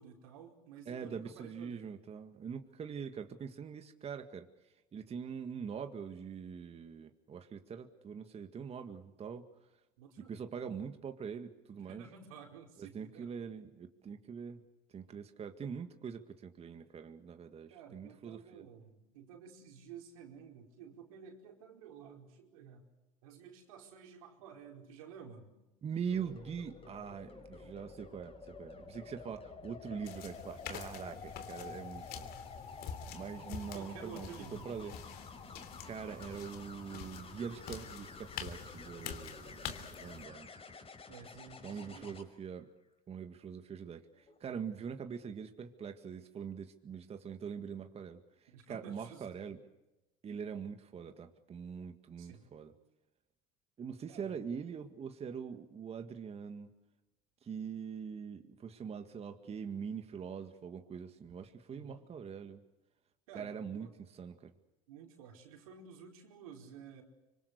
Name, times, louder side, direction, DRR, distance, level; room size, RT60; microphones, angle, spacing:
voice 1, 0.0-1.9 10.0-10.3 11.8-13.3 17.7-22.9 23.2-25.5 33.7-34.7 41.1-42.2 48.5-49.4 52.2-52.5 54.1-54.3 61.7-62.0 63.3-63.9 64.9-67.0, right 7 dB, 90° right, 3 dB, 4.7 m, -52 dB
voice 2, 0.9-4.5 4.9-9.5 10.3-12.0 12.8-14.6 14.9-18.7 25.8-32.3 33.1-35.0 35.9-40.5 41.6-42.7 43.1-49.6 50.2-52.7 53.8-56.7 57.4-62.6 63.3-64.5, right 6 dB, 35° right, 7 dB, 2.0 m, -43 dB
sound 1, 26.1-42.2 44.1-44.4, left 4 dB, 35° left, 5.5 m, -50 dB
sound 2, 30.0-40.2, left 8 dB, 60° left, 3.1 m, -47 dB
26.0 x 25.5 x 6.8 m, 0.99 s
supercardioid pair, 90°, 17 cm